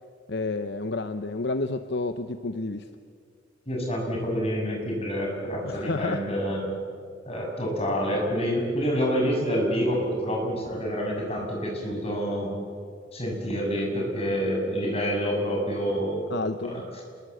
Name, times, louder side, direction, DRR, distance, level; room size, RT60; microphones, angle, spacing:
voice 1, 0.3-2.9 5.6-6.3 16.3-16.8, left 3 dB, 60° left, 10 dB, 0.8 m, -30 dB
voice 2, 3.7-6.6 7.3-12.5 13.1-16.2 16.6-16.8, equal, 30° left, 0 dB, 6.7 m, -27 dB
27.5 x 22.0 x 7.9 m, 2.1 s
head